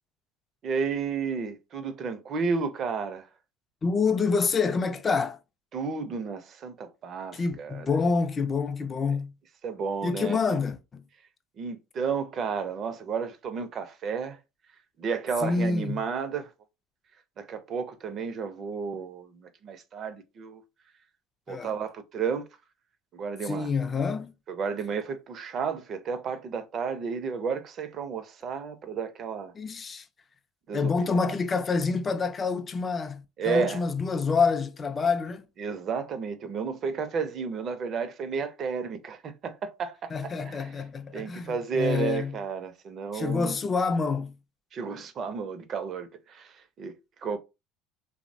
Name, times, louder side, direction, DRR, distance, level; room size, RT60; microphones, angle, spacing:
voice 1, 0.6-3.3 5.7-7.9 9.6-10.6 11.6-14.4 15.0-16.5 17.4-20.6 21.5-22.4 23.1-23.7 24.5-29.5 30.7-31.3 33.4-33.8 35.6-40.7 41.1-43.6 44.7-47.4, right 5 dB, 40° right, 0.4 m, -32 dB
voice 2, 3.8-5.4 7.3-9.3 10.0-11.0 15.4-16.0 21.5-21.7 23.4-24.3 29.6-30.1 30.7-35.5 40.1-42.3 43.1-44.3, left 4 dB, 25° left, 0.3 m, -27 dB
2.9 x 2.0 x 2.6 m
supercardioid pair, 110°, 0 cm